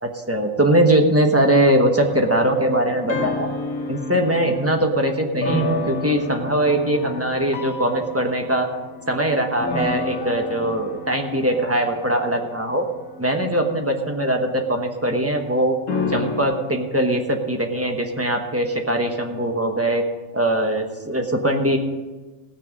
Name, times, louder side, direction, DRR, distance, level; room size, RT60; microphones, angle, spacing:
voice 1, 0.0-3.5 3.9-8.7 9.1-12.8 13.2-15.8 16.1-20.0 20.3-21.8, right 1 dB, 10° right, 3 dB, 1.1 m, -21 dB
sound 1, 2.0-4.9 5.4-14.6 15.9-16.4, left 2 dB, 70° left, 1.7 m, -31 dB
18.0 x 6.6 x 5.3 m, 1.2 s
omnidirectional pair, 1.4 m